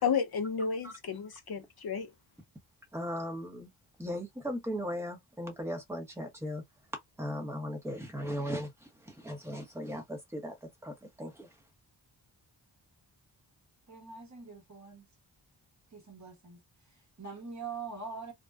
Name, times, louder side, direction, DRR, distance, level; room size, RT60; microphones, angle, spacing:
voice 1, 0.0-2.1, left 6 dB, 55° left, 0.6 m, -32 dB
voice 2, 2.9-3.7 4.0-6.6 7.2-11.6, equal, 5° right, 0.9 m, -38 dB
voice 3, 13.9-15.0 15.9-16.6 16.9-18.3, right 4 dB, 35° right, 1.2 m, -43 dB
2.6 x 2.2 x 2.2 m
cardioid pair, 65°, 47 cm